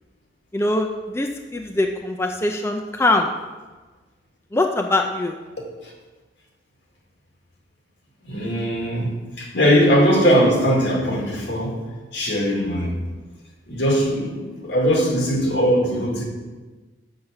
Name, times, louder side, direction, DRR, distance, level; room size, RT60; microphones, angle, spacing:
voice 1, 0.5-0.9 1.1-3.3 4.5-5.3, left 2 dB, 15° left, 3 dB, 0.4 m, -22 dB
voice 2, 8.3-11.8 12.1-12.9 13.7-16.2, equal, 75° left, -1 dB, 2.3 m, -20 dB
7.1 x 6.3 x 6.4 m, 1.3 s
head